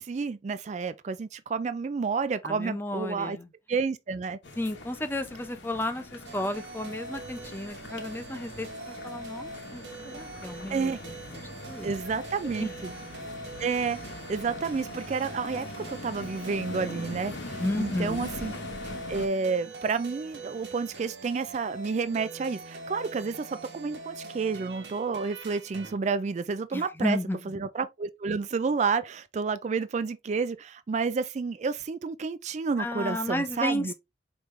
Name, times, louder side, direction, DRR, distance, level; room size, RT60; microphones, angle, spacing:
voice 1, 0.0-3.4 3.7-4.4 10.7-11.0 11.8-12.9 13.6-14.0 14.3-18.5 19.1-27.2 27.5-33.9, right 5 dB, 40° right, 0.3 m, -30 dB
voice 2, 2.4-3.5 4.6-10.9 11.3-11.9 12.4-12.7 17.6-18.3 26.7-27.4 32.8-33.9, left 1 dB, 10° left, 0.6 m, -33 dB
sound 1, 4.4-19.3, left 2 dB, 85° left, 1.0 m, -42 dB
sound 2, 6.2-26.0, right 2 dB, 75° right, 1.3 m, -43 dB
5.1 x 3.1 x 3.2 m
head